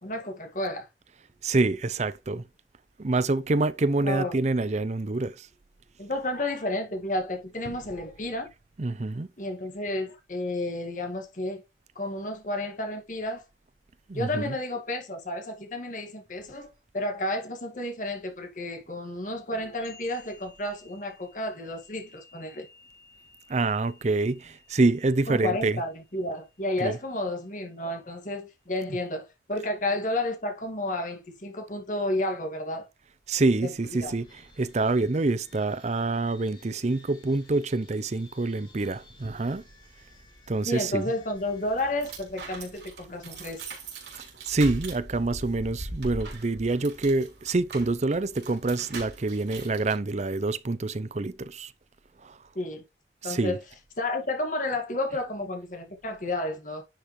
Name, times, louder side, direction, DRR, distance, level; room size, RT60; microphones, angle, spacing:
voice 1, 0.0-0.9 4.0-4.3 6.0-8.5 9.4-11.6 12.0-13.5 14.1-22.7 25.3-32.9 33.6-34.1 40.7-43.6 52.6-52.8 53.2-53.6 54.0-56.8, left 1 dB, 45° left, 1.9 m, -31 dB
voice 2, 1.4-2.4 3.0-5.5 7.7-7.8 8.8-9.3 14.1-14.5 23.5-25.8 26.8-27.0 33.3-39.6 40.5-41.0 44.2-51.7 52.2-52.4 53.2-53.6, right 2 dB, 40° right, 0.5 m, -26 dB
sound 1, 19.5-27.0, left 2 dB, 60° left, 3.7 m, -55 dB
sound 2, 33.8-42.8, left 2 dB, 25° left, 3.4 m, -57 dB
sound 3, 41.4-50.0, right 2 dB, 70° right, 3.4 m, -41 dB
10.0 x 5.6 x 3.1 m
head